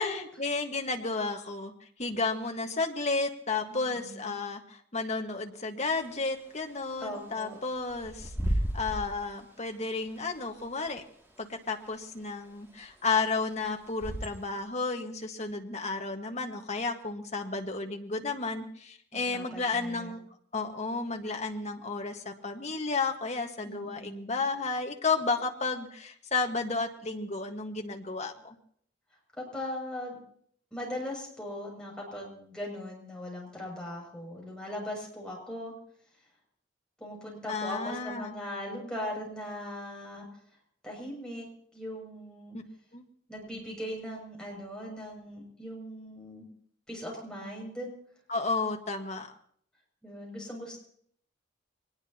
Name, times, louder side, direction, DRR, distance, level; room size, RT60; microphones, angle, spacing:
voice 1, 0.0-1.7 2.0-8.3 8.7-11.0 11.4-20.2 20.5-28.5 37.5-38.3 42.5-42.6 42.9-43.0 48.3-49.3, left 3 dB, 40° left, 3 dB, 1.6 m, -32 dB
voice 2, 3.7-4.3 7.0-7.6 19.1-20.1 23.6-24.3 29.4-30.2 30.7-35.7 37.0-40.3 40.8-42.6 43.3-46.4 46.9-47.9 50.0-50.8, left 1 dB, 5° left, -3 dB, 7.0 m, -39 dB
Bird / Wind, 5.9-14.6, right 1 dB, 15° right, 2.5 m, -37 dB
23.5 x 19.5 x 2.9 m, 0.62 s
head